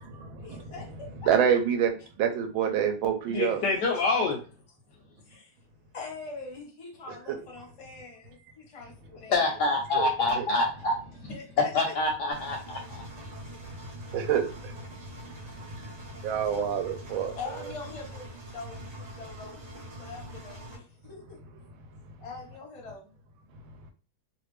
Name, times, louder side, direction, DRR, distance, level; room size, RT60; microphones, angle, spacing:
voice 1, 0.4-1.3 3.3-3.5 3.9-4.4 5.2-5.6 5.9-9.6 11.3-11.9 17.3-21.4 22.2-23.1, left 4 dB, 25° left, -1 dB, 0.7 m, -43 dB
voice 2, 1.3-3.6 7.3-7.4 9.9-10.1 10.4-10.5 14.1-14.7 16.2-17.3, right 8 dB, 75° right, 4 dB, 1.4 m, -26 dB
voice 3, 3.3-4.4 9.3-10.9 11.7-13.0, left 3 dB, 70° left, 1 dB, 1.0 m, -26 dB
Engine, 12.3-20.8, right 1 dB, 45° right, 1.3 m, -44 dB
3.3 x 2.5 x 3.2 m, 0.37 s
omnidirectional pair, 2.3 m